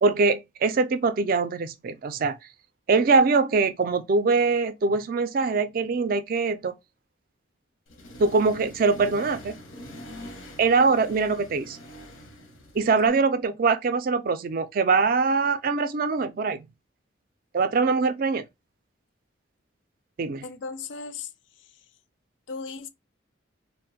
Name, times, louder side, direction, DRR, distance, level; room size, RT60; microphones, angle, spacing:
voice 1, 0.0-2.3 2.9-6.7 8.2-9.6 10.6-11.8 12.7-16.7 17.5-18.5 20.2-20.4, right 4 dB, 45° right, 0.3 m, -23 dB
Accelerating revving vroom, 7.9-13.1, equal, 85° left, 0.8 m, -44 dB
voice 2, 20.4-21.9 22.5-22.9, left 4 dB, 70° left, 0.4 m, -37 dB
2.4 x 2.1 x 3.9 m
head